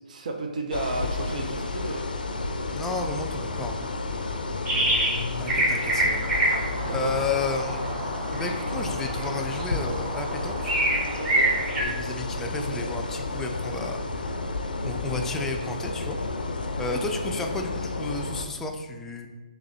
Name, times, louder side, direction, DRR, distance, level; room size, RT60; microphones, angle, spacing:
voice 1, 0.1-2.1 7.0-7.1 11.2-11.5, right 2 dB, 55° right, 3 dB, 0.6 m, -32 dB
sound 1, 0.7-18.4, left 3 dB, 80° left, 0.5 m, -31 dB
voice 2, 2.7-3.8 5.4-7.9 8.3-10.8 11.7-14.3 14.8-16.2 16.8-19.3, left 3 dB, 10° left, 3 dB, 0.3 m, -32 dB
sound 2, 4.7-5.2 5.5-11.8, right 1 dB, 15° right, 0.8 m, -27 dB
Thunder, 5.3-13.5, right 1 dB, 75° right, 0.9 m, -43 dB
4.0 x 2.9 x 4.0 m, 1.2 s
figure-of-eight pair, 135°, 5 cm